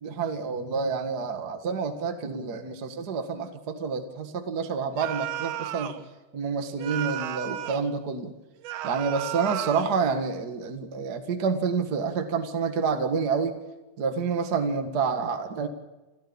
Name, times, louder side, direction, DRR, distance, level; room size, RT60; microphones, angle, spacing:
voice 1, 0.0-5.9 6.3-8.3 8.8-13.6 14.0-15.7, right 5 dB, 45° right, 6 dB, 1.2 m, -28 dB
sound 1, 5.0-6.0 6.8-7.9 8.6-10.0, right 13 dB, 90° right, 3.1 m, -34 dB
29.0 x 14.0 x 8.7 m, 1.1 s
omnidirectional pair, 4.5 m